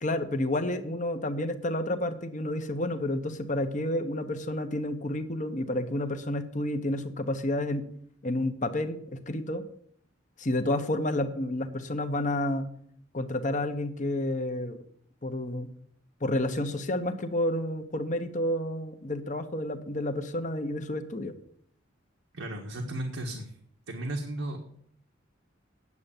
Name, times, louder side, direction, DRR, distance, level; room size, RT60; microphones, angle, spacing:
voice 1, 0.0-7.9 8.2-9.6 10.4-12.7 13.1-14.8 15.2-15.7 16.2-21.3, left 1 dB, 40° left, 8 dB, 1.1 m, -30 dB
voice 2, 22.3-23.5 23.9-24.6, right 1 dB, 85° right, 1 dB, 1.5 m, -34 dB
9.6 x 7.9 x 7.2 m, 0.64 s
head